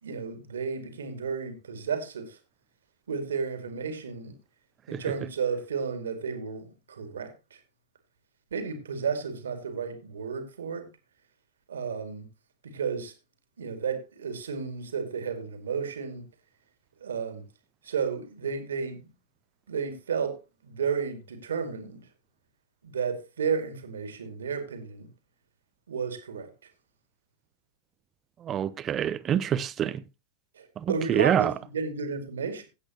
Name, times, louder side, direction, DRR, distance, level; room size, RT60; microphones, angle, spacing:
voice 1, 0.0-2.4 3.1-4.3 4.9-7.6 8.5-10.9 11.7-12.2 12.6-13.1 13.6-16.2 17.0-17.4 17.8-19.1 19.7-20.4 20.6-22.1 22.8-25.1 25.9-26.5 30.6-32.6, right 6 dB, 65° right, 2.2 m, -32 dB
voice 2, 28.4-30.0 30.8-31.5, right 10 dB, 25° right, 0.7 m, -26 dB
16.0 x 8.2 x 2.9 m
figure-of-eight pair, 90°, 0 cm